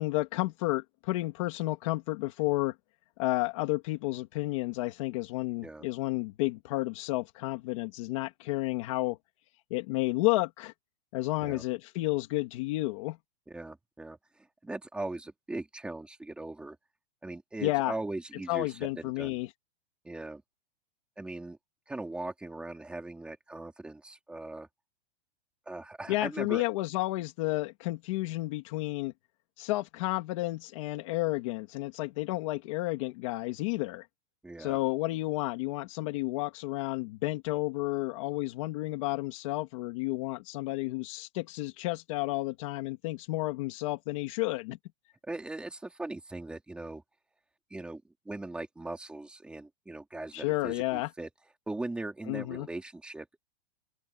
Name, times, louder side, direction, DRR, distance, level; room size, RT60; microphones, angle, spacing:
voice 1, 0.0-2.7 3.2-9.2 9.7-10.7 11.1-13.2 17.6-17.9 18.5-19.5 26.1-29.1 29.6-34.1 34.6-44.8 50.3-51.1 52.3-52.7, left 20 dB, 30° left, 2.5 m, -31 dB
voice 2, 13.5-14.2 14.6-16.8 17.2-19.4 20.0-20.4 21.2-21.6 21.9-24.7 25.7-26.6 34.4-34.8 45.3-47.0 47.7-51.3 51.7-53.4, right 2 dB, 5° right, 3.4 m, -39 dB
open air
supercardioid pair, 180°, 31 cm